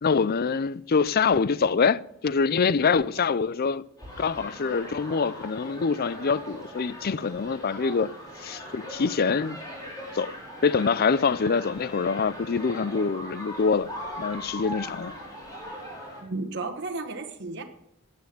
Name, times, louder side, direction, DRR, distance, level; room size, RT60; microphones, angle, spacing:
voice 1, 0.0-3.8 4.2-8.1 8.4-9.6 10.1-10.3 10.6-13.9 14.2-15.1, left 5 dB, 45° left, 0.5 m, -25 dB
sound 1, 4.0-16.2, equal, 20° left, 5.6 m, -40 dB
voice 2, 16.2-17.6, right 3 dB, 55° right, 1.4 m, -33 dB
17.0 x 9.5 x 6.8 m
head